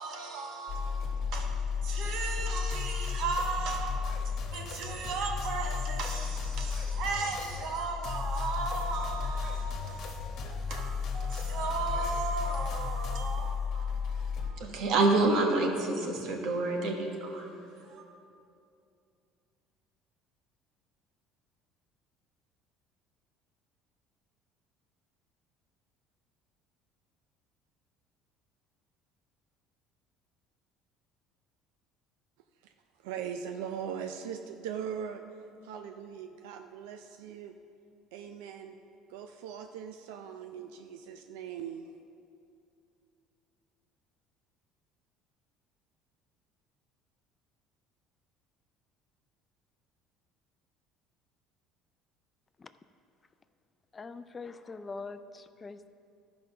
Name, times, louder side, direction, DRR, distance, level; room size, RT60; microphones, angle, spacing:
voice 1, 0.0-4.2 4.5-14.0 14.4-18.0, right 3 dB, 70° right, 2 dB, 1.4 m, -33 dB
sound 1, 0.7-14.5, left 5 dB, 55° left, 1.2 m, -34 dB
voice 2, 32.6-37.5 38.1-38.8 39.1-41.9, right 8 dB, 90° right, 6 dB, 0.4 m, -40 dB
voice 3, 53.9-55.9, left 4 dB, 25° left, 11 dB, 0.4 m, -43 dB
12.0 x 5.1 x 5.7 m, 2.6 s
supercardioid pair, 105°, 0 cm